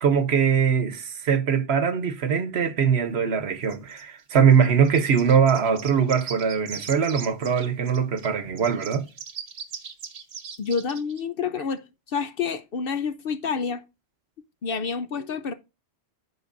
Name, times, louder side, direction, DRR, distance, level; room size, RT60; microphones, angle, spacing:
voice 1, 0.0-9.0, right 7 dB, 65° right, 1.1 m, -22 dB
sound 1, 3.7-8.3 8.6-11.2, right 6 dB, 80° right, 1.3 m, -40 dB
voice 2, 10.6-13.8 14.6-15.5, left 5 dB, 55° left, 0.7 m, -28 dB
13.5 x 4.7 x 2.5 m
omnidirectional pair, 1.2 m